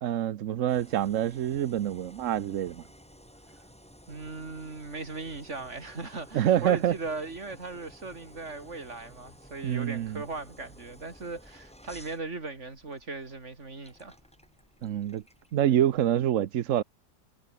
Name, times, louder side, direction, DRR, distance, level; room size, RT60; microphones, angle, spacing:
voice 1, 0.0-2.8 6.3-6.9 9.6-10.2 14.8-15.2 15.5-16.8, right 11 dB, 60° right, 0.8 m, -26 dB
sound 1, 0.7-16.0, equal, 5° left, 6.0 m, -54 dB
voice 2, 4.1-14.2, right 3 dB, 40° right, 3.6 m, -38 dB
omnidirectional pair, 2.0 m